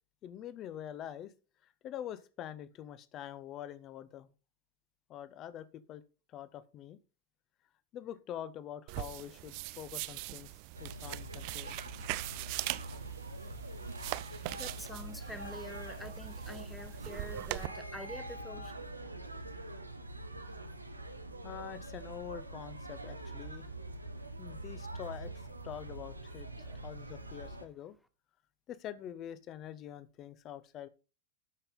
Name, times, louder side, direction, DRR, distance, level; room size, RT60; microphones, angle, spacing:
voice 1, 0.2-1.3 1.8-4.3 5.1-6.0 6.3-7.0 7.9-10.5 10.8-11.8 21.4-23.6 24.4-25.3 25.6-26.5 26.8-28.0 28.7-30.9, left 10 dB, 35° left, 0.8 m, -45 dB
sound 1, 8.9-17.7, right 20 dB, 45° right, 0.4 m, -41 dB
sound 2, 10.7-27.7, right 2 dB, 85° right, 1.0 m, -44 dB
voice 2, 14.1-18.8 26.6-26.9, left 1 dB, 5° left, 1.0 m, -47 dB
12.0 x 5.8 x 3.7 m
figure-of-eight pair, 90°, 0 cm